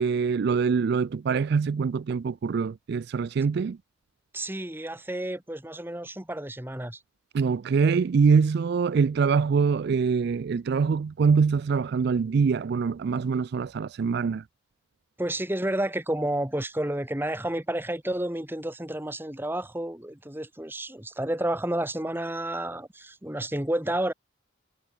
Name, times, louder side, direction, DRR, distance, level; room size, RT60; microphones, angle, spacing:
voice 1, 0.0-3.8 7.3-14.4, right 5 dB, 55° right, 0.3 m, -24 dB
voice 2, 4.3-7.0 15.2-24.1, right 1 dB, 10° right, 1.3 m, -30 dB
head